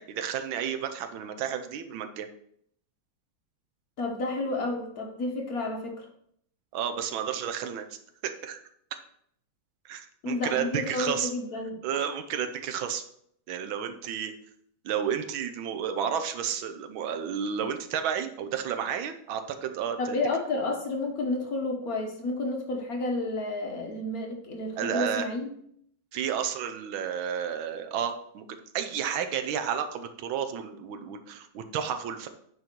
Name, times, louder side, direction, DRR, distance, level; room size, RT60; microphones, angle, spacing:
voice 1, 0.0-2.3 6.7-8.0 8.2-8.6 9.8-11.3 11.8-13.0 13.5-14.3 14.8-20.2 24.7-25.3 26.1-32.3, right 8 dB, 80° right, 8 dB, 1.5 m, -31 dB
voice 2, 4.0-6.1 10.2-11.8 20.0-25.5, left 2 dB, 55° left, 2 dB, 1.2 m, -31 dB
9.6 x 4.0 x 4.4 m, 0.68 s
omnidirectional pair, 2.2 m